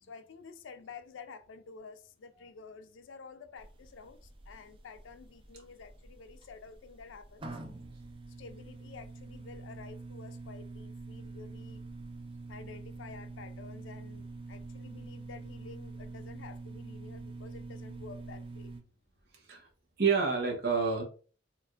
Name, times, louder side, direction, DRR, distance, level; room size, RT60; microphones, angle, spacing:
voice 1, 0.0-7.5 8.4-11.8 12.5-18.7, left 5 dB, 80° left, 0.4 m, -50 dB
sound 1, 3.6-18.8, right 3 dB, 30° right, 0.5 m, -46 dB
voice 2, 19.3-19.7 20.0-21.0, right 5 dB, 55° right, 0.9 m, -28 dB
4.6 x 2.4 x 2.5 m
head